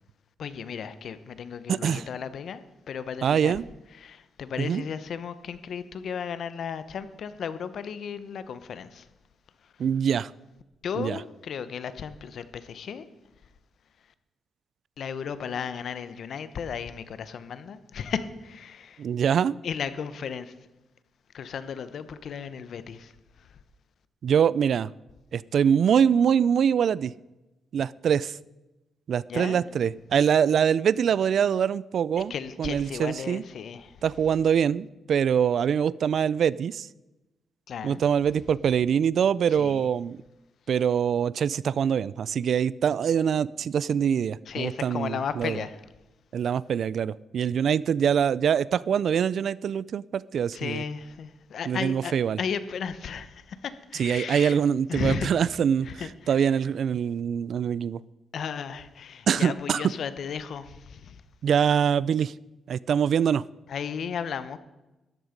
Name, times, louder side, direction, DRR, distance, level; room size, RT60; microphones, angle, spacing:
voice 1, 0.4-3.5 4.0-9.1 10.8-13.0 15.0-19.0 19.6-20.5 21.3-23.1 23.4-23.5 29.3-29.6 32.3-34.0 37.7-38.0 39.6-39.9 44.5-45.8 50.5-54.6 54.9-55.3 55.8-56.5 58.3-61.2 63.7-64.6, left 7 dB, 65° left, 13 dB, 1.0 m, -35 dB
voice 2, 1.7-2.1 3.2-3.7 4.6-4.8 9.8-10.3 11.0-11.2 19.0-19.6 24.2-24.9 25.3-27.1 27.7-28.4 29.1-32.3 32.6-33.4 34.0-36.9 37.8-40.2 40.7-45.6 46.3-50.8 51.7-52.4 54.0-55.9 56.3-58.0 59.3-59.9 61.4-62.3 62.7-63.4, right 8 dB, 65° right, 21 dB, 0.4 m, -24 dB
13.5 x 11.0 x 5.2 m, 1.0 s
cardioid pair, 100°, 0 cm